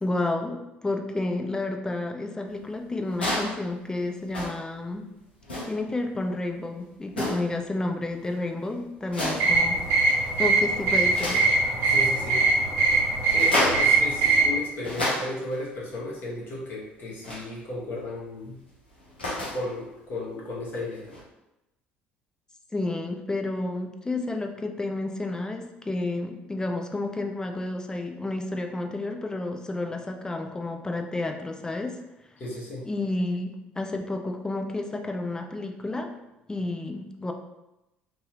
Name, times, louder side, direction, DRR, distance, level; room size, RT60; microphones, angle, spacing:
voice 1, 0.0-5.1 5.7-9.8 10.0-11.4 22.7-32.0 32.8-36.1 36.5-37.3, left 2 dB, 10° left, 3 dB, 0.4 m, -31 dB
sound 1, 3.1-3.6 4.3-4.7 5.4-5.8 7.1-7.6 9.0-9.6 10.0-10.4 10.7-11.5 13.3-13.9 14.6-15.5 17.2-17.5 18.9-19.6 21.1-21.2, left 1 dB, 85° left, 0.7 m, -30 dB
sound 2, 9.4-14.5, right 3 dB, 55° right, 0.9 m, -22 dB
voice 2, 11.9-12.5 13.3-18.6 19.5-21.1 32.4-32.8, left 2 dB, 40° left, -5 dB, 1.0 m, -34 dB
2.7 x 2.4 x 2.9 m, 0.93 s
figure-of-eight pair, 60°, 5 cm